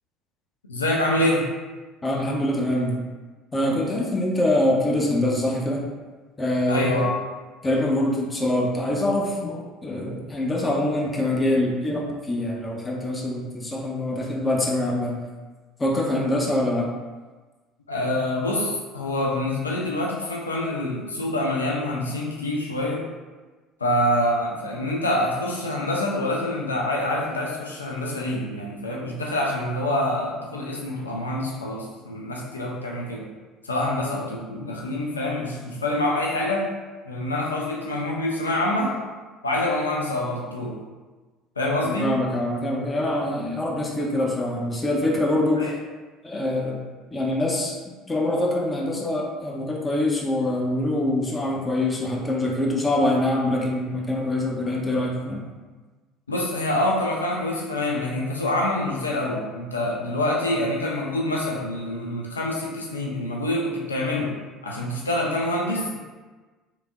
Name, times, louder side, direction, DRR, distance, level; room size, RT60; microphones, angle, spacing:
voice 1, 0.7-1.5 6.7-7.2 17.9-23.1 23.8-33.3 33.6-36.7 37.1-39.0 39.4-40.8 41.6-42.1 45.6-45.7 56.3-64.3 64.6-66.0, left 1 dB, 80° left, -2 dB, 0.4 m, -26 dB
voice 2, 2.0-2.9 3.5-5.8 6.4-7.1 7.6-15.1 15.8-16.9 41.8-45.7 46.2-46.8 47.1-47.8 48.1-55.5, left 1 dB, 20° left, -1 dB, 0.6 m, -24 dB
3.4 x 2.9 x 2.4 m, 1.3 s
figure-of-eight pair, 60°, 0 cm